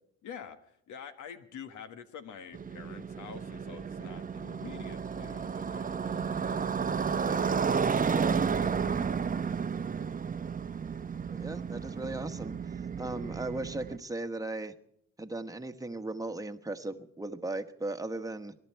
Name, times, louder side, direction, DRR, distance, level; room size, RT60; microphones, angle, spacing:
voice 1, 0.2-6.6 7.3-7.5, left 7 dB, 80° left, 9 dB, 1.6 m, -47 dB
Motorcycle, 2.5-14.0, right 6 dB, 30° right, 0.8 m, -32 dB
voice 2, 11.3-12.5 13.0-14.7 15.2-18.6, right 2 dB, 10° right, 8 dB, 1.2 m, -37 dB
22.0 x 12.0 x 4.6 m, 0.69 s
cardioid pair, 90°, 30 cm